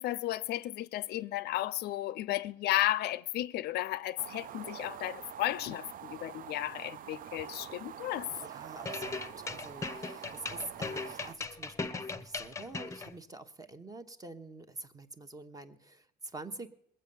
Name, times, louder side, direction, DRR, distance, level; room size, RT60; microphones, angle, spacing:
voice 1, 0.0-8.3, left 15 dB, 75° left, 0.5 m, -34 dB
sound 1, 4.2-11.3, right 10 dB, 55° right, 0.5 m, -46 dB
voice 2, 8.4-16.7, right 2 dB, 20° right, 1.1 m, -46 dB
sound 2, 8.8-13.1, left 4 dB, 15° left, 0.8 m, -38 dB
20.0 x 7.7 x 7.0 m
cardioid pair, 110°, 17 cm